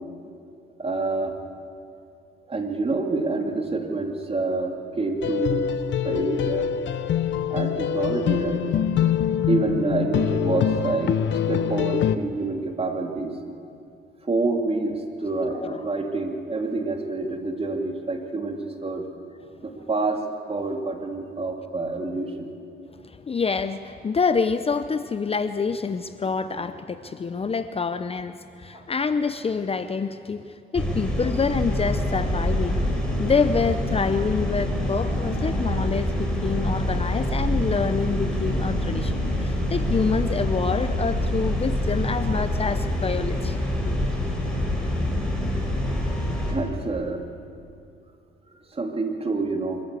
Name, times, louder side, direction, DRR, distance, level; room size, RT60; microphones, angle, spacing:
voice 1, 0.8-1.3 2.5-5.7 6.0-6.7 7.5-8.6 9.5-11.1 11.5-13.3 14.3-19.1 19.6-20.2 20.5-22.5 28.7-28.8 46.5-47.2 48.7-49.8, right 3 dB, 30° right, 3 dB, 2.7 m, -27 dB
sound 1, 5.2-12.2, left 9 dB, 70° left, 0.9 m, -24 dB
voice 2, 15.4-15.8 23.0-43.6 43.8-43.9, left 5 dB, 30° left, 11 dB, 0.7 m, -27 dB
sound 2, 30.7-46.5, left 1 dB, 5° left, 5.0 m, -26 dB
25.0 x 13.5 x 8.4 m, 2.5 s
cardioid pair, 90°, 20 cm